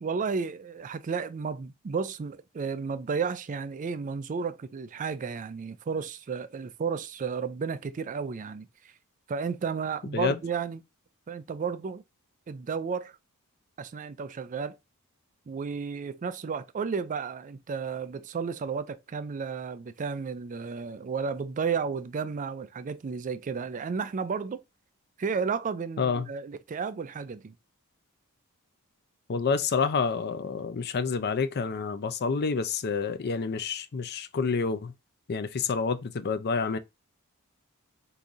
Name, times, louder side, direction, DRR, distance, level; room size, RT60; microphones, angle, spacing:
voice 1, 0.0-8.9 9.3-10.8 11.3-12.0 12.5-13.2 13.8-14.8 15.5-24.6 25.2-27.5, right 5 dB, 35° right, 0.3 m, -33 dB
voice 2, 29.3-34.9 35.3-36.8, left 5 dB, 45° left, 0.5 m, -28 dB
3.9 x 2.7 x 4.7 m
head